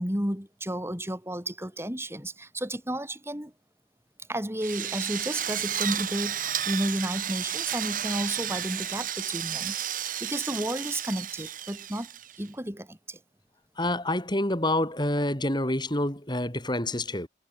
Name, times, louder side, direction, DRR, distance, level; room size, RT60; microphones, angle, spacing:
voice 1, 0.0-3.5 4.3-9.8 10.2-12.1 12.4-13.2, right 1 dB, 15° right, 3.8 m, -32 dB
Drill, 4.6-12.5, right 10 dB, 45° right, 3.6 m, -32 dB
voice 2, 13.8-17.3, left 1 dB, 25° left, 4.0 m, -27 dB
head